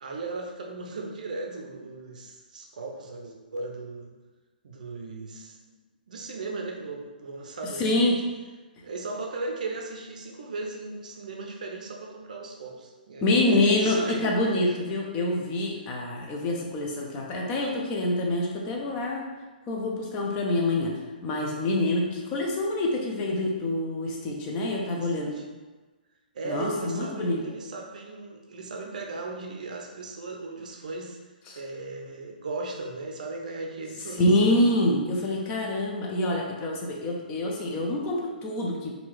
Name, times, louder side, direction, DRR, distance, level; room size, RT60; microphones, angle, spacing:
voice 1, 0.0-4.1 4.6-5.6 6.1-8.1 8.8-14.8 24.6-25.4 26.3-31.2 31.5-34.6, right 3 dB, 55° right, 1 dB, 0.6 m, -37 dB
voice 2, 7.8-8.2 13.2-19.3 19.7-25.3 26.4-27.4 31.5-31.6 34.2-39.0, left 1 dB, 20° left, 0 dB, 0.5 m, -26 dB
3.7 x 2.4 x 3.3 m, 1.2 s
figure-of-eight pair, 125°, 5 cm